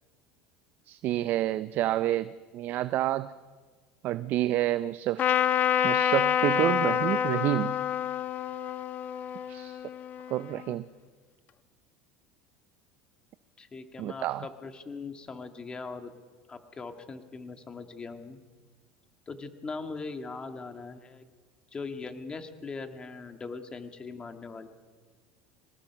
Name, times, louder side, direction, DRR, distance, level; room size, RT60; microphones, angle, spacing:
voice 1, 0.9-3.3 4.0-5.2 5.8-7.8 9.5-9.8 10.3-10.8 14.0-14.5, right 14 dB, 50° right, 15 dB, 0.6 m, -29 dB
Trumpet, 5.2-10.7, left 9 dB, 40° left, 1.1 m, -27 dB
voice 2, 13.6-16.1 16.5-18.4 19.3-21.2 21.7-24.7, left 4 dB, 20° left, 7 dB, 1.9 m, -40 dB
23.5 x 19.0 x 5.9 m, 1.5 s
supercardioid pair, 120°, 4 cm